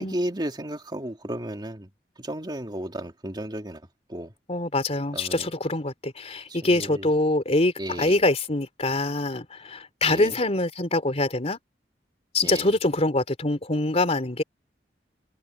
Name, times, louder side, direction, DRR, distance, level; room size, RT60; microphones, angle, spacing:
voice 1, 0.0-1.9 2.2-3.8 4.1-4.3 5.1-5.5 6.5-7.1 7.8-8.2 10.1-10.4 12.4-12.7, right 1 dB, 25° right, 2.8 m, -33 dB
voice 2, 4.5-7.7 8.0-11.6 12.3-14.4, left 2 dB, 40° left, 3.3 m, -24 dB
head